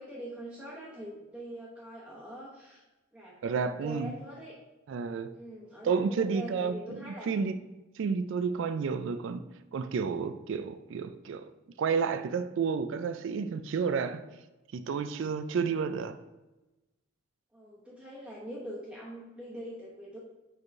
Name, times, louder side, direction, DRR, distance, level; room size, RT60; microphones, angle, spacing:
voice 1, 0.0-2.8 3.1-4.6 5.3-7.3 17.5-20.2, right 1 dB, 5° right, -8 dB, 1.0 m, -43 dB
voice 2, 3.4-4.2 4.9-5.3 5.8-7.6 8.0-9.4 9.7-11.5 11.8-14.2 14.7-16.2, right 5 dB, 60° right, 11 dB, 0.3 m, -31 dB
4.9 x 4.7 x 4.7 m, 1.1 s
head